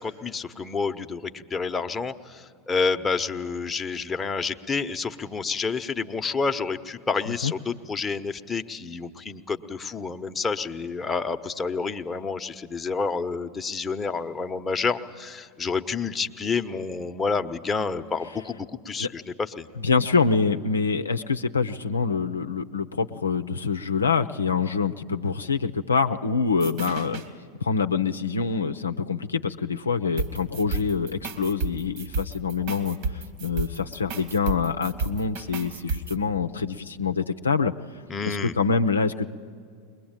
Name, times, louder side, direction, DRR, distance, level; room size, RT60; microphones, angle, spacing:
voice 1, 0.0-19.7 38.1-38.5, left 4 dB, 20° left, 6 dB, 1.0 m, -29 dB
voice 2, 19.8-27.2 27.6-33.0 33.4-37.7 38.2-39.3, left 5 dB, 85° left, 7 dB, 0.6 m, -25 dB
sound 1, 26.6-27.3 30.2-36.2, right 4 dB, 55° right, 2.1 m, -32 dB
21.5 x 20.5 x 9.0 m, 2.2 s
hypercardioid pair, 90°, 0 cm